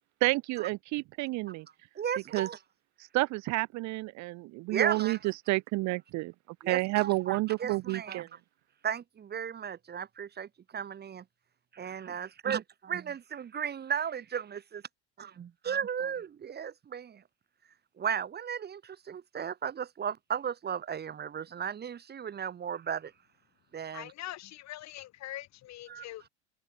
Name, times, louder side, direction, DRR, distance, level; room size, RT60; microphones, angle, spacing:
voice 1, 0.2-1.7 2.3-2.5 3.1-6.3 6.7-8.3, right 22 dB, 50° right, 0.9 m, -30 dB
voice 2, 2.0-2.6 4.7-5.2 6.6-8.2 8.8-11.2 11.7-14.8 15.2-17.2 18.0-23.1 23.7-24.1 25.9-26.0, right 8 dB, 30° right, 1.2 m, -35 dB
voice 3, 23.9-26.2, left 15 dB, 50° left, 2.3 m, -43 dB
hypercardioid pair, 85°, 36 cm